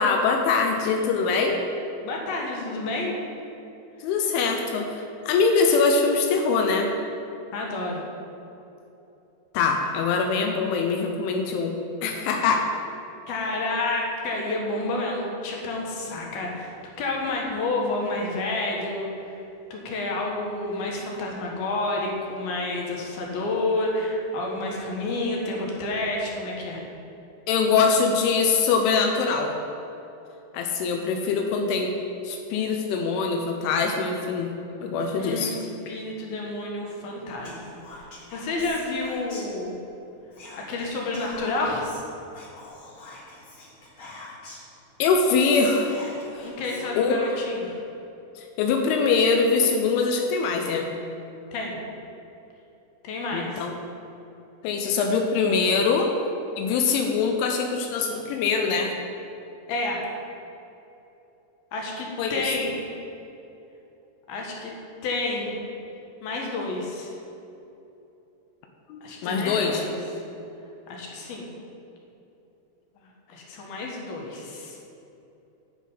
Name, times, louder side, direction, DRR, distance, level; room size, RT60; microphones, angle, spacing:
voice 1, 0.0-1.6 4.0-6.9 9.5-12.7 27.5-29.5 30.5-31.9 32.2-34.5 34.8-35.6 45.0-46.0 46.3-46.5 47.0-47.2 48.4-50.9 53.3-53.7 54.6-56.1 56.6-58.9 62.2-62.5 68.9-69.8, left 4 dB, 85° left, 3 dB, 3.2 m, -23 dB
voice 2, 2.0-3.2 7.5-8.0 13.3-16.7 17.0-19.4 19.7-26.8 35.2-37.8 38.3-39.8 40.7-41.9 46.4-47.8 51.5-51.8 53.0-53.7 59.7-60.0 61.7-62.7 64.3-64.7 65.0-65.6 66.2-67.1 69.0-69.9 70.9-71.5 73.0-74.8, left 2 dB, 65° left, -1 dB, 2.7 m, -29 dB
Whispering, 37.4-39.9 40.3-44.7 45.1-45.2 45.4-47.6, left 2 dB, 45° left, 2.7 m, -44 dB
10.0 x 7.3 x 5.5 m, 2.9 s
omnidirectional pair, 5.4 m